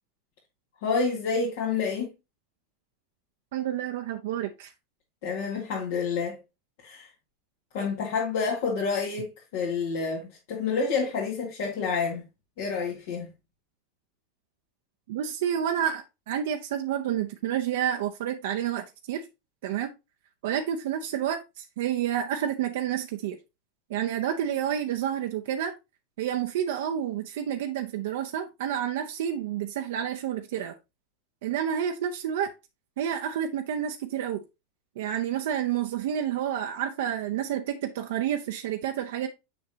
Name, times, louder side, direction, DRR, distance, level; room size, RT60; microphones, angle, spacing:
voice 1, 0.8-2.1 5.2-6.4 6.8-7.1 7.7-12.2 12.6-13.3, left 5 dB, 70° left, 1.8 m, -28 dB
voice 2, 3.5-4.7 15.1-19.3 19.6-19.9 20.4-23.4 23.9-25.7 26.2-30.7 31.4-32.5 33.0-34.4 35.0-39.3, right 10 dB, 70° right, 0.5 m, -29 dB
6.8 x 5.2 x 2.7 m
hypercardioid pair, 100°, 0 cm